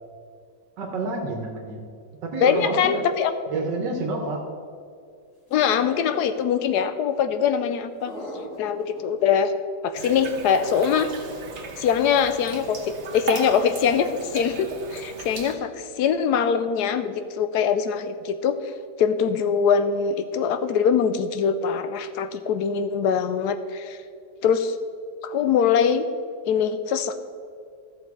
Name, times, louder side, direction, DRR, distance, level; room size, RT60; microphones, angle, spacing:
voice 1, 0.8-1.8 2.2-3.1 3.5-4.5, right 3 dB, 80° right, 2 dB, 1.7 m, -28 dB
voice 2, 2.4-3.3 5.5-8.1 8.6-9.5 9.8-11.1 11.8-18.6 19.0-24.0 24.4-24.8 25.2-26.1 26.5-27.1, left 7 dB, 75° left, 11 dB, 1.2 m, -23 dB
Trichosurus vulpecula Grunts, 5.5-6.4 8.1-9.0, equal, 45° left, 3.2 m, -38 dB
sound 1, 9.9-15.5, right 5 dB, 45° right, 1.2 m, -36 dB
14.0 x 6.6 x 4.7 m, 2.3 s
omnidirectional pair, 1.9 m